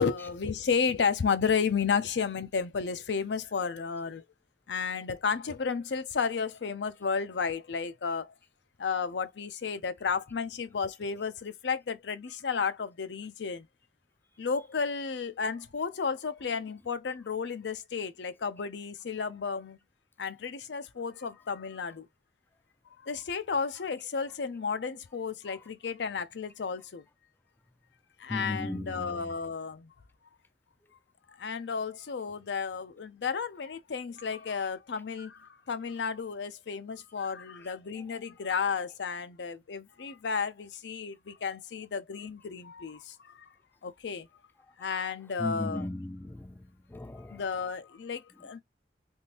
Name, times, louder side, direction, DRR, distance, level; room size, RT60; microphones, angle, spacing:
voice 1, 0.0-4.2 4.7-8.3 8.8-13.7 14.4-19.8 20.2-22.1 23.0-27.0 28.2-29.9 31.3-43.5 43.8-44.3 44.8-45.9 47.3-48.6, left 5 dB, 75° left, 0.5 m, -32 dB
voice 2, 28.3-29.3 45.4-46.6 46.9-47.4, left 2 dB, 10° left, 0.3 m, -36 dB
3.6 x 2.6 x 2.8 m
head